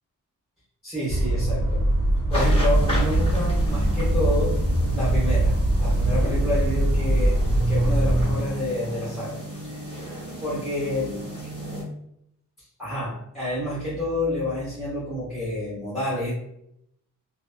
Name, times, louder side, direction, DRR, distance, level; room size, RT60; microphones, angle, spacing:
voice 1, 0.8-1.8 2.3-4.6 4.9-9.4 9.6-9.8 10.4-11.2 12.8-16.3, left 1 dB, ahead, -11 dB, 0.8 m, -29 dB
sound 1, 1.1-8.4, right 1 dB, 50° left, 1.1 m, -22 dB
sound 2, 2.3-11.8, equal, 20° left, 1.0 m, -35 dB
2.4 x 2.3 x 2.3 m, 0.74 s
wide cardioid pair, 160°, 32 cm